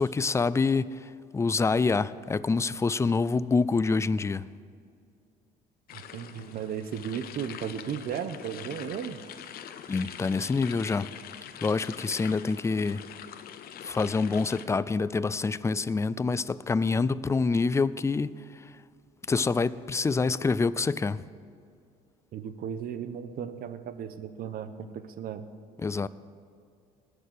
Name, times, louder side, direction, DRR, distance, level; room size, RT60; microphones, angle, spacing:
voice 1, 0.0-4.5 9.9-11.1 11.6-13.0 13.8-18.3 19.3-21.2 25.8-26.1, left 4 dB, 15° left, 0.4 m, -26 dB
sound 1, 5.9-14.6, left 9 dB, 65° left, 0.8 m, -44 dB
voice 2, 5.9-9.2 22.3-25.5, right 8 dB, 60° right, 1.0 m, -35 dB
20.0 x 6.6 x 6.7 m
cardioid pair, 110°, 17 cm